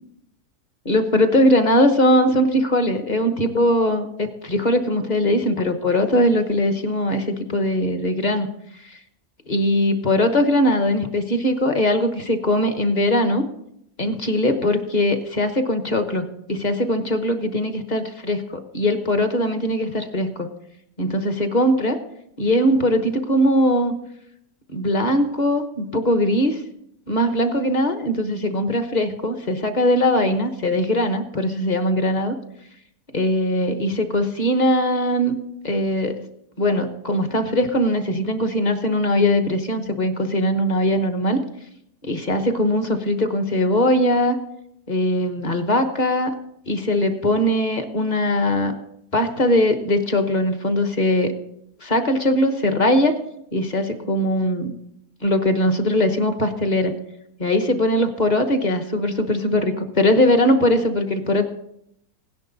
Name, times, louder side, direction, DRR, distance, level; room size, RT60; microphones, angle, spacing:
voice 1, 0.8-8.5 8.8-9.0 9.5-13.4 14.0-20.5 21.0-22.0 22.4-23.9 24.7-26.6 27.1-32.4 33.1-36.2 36.6-41.4 42.0-44.4 44.9-46.3 46.7-48.7 49.1-51.3 51.8-53.1 53.5-54.7 55.2-56.9 57.4-61.5, left 1 dB, 35° left, 8 dB, 1.0 m, -20 dB
17.0 x 10.5 x 4.0 m, 0.75 s
omnidirectional pair, 1.6 m